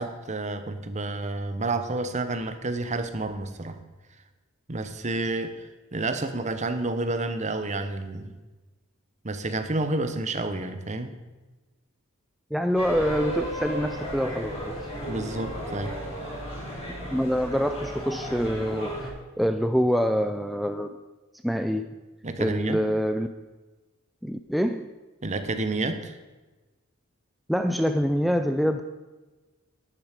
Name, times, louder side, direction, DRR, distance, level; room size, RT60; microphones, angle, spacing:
voice 1, 0.0-3.8 4.7-8.3 9.2-11.2 15.1-15.9 22.2-22.8 25.2-26.1, right 2 dB, 35° right, 9 dB, 1.0 m, -30 dB
voice 2, 12.5-14.8 17.1-20.9 21.4-21.9 22.4-23.3 24.2-24.9 27.5-28.8, equal, ahead, 6 dB, 0.4 m, -25 dB
sound 1, 12.7-19.1, equal, 30° left, 4.9 m, -34 dB
11.0 x 10.5 x 5.1 m, 1.2 s
head